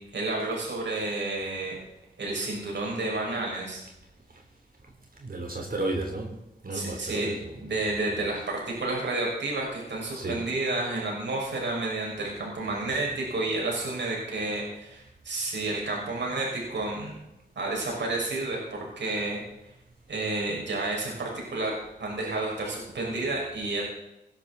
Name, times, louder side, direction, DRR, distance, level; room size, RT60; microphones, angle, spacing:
voice 1, 0.1-1.8 2.2-3.8 6.7-7.3 7.6-17.1 17.6-19.4 20.1-21.7 22.0-23.8, right 2 dB, 80° right, -2 dB, 5.6 m, -30 dB
voice 2, 5.2-6.3 6.6-7.7 8.1-8.3 10.1-10.4, right 2 dB, 55° right, 1 dB, 3.4 m, -33 dB
20.0 x 12.0 x 4.1 m, 0.87 s
cardioid pair, 60°, 18 cm